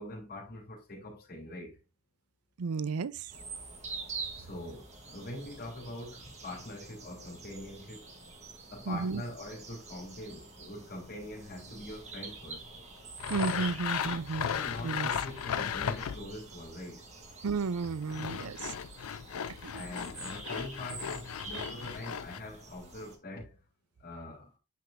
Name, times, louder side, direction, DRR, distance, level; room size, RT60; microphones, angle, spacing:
voice 1, 0.0-1.8 4.3-8.1 8.7-12.6 14.4-17.1 19.7-23.6 24.0-24.5, left 1 dB, 45° left, 3.1 m, -43 dB
voice 2, 2.6-3.3 8.9-9.2 13.3-14.5 14.8-15.1 17.4-18.7 19.6-19.8, right 4 dB, 85° right, 0.5 m, -33 dB
sound 1, 3.3-23.2, right 3 dB, 30° right, 1.5 m, -47 dB
Sawing, 13.2-16.4 17.8-22.4, left 8 dB, 75° left, 0.4 m, -36 dB
9.3 x 4.8 x 2.5 m
head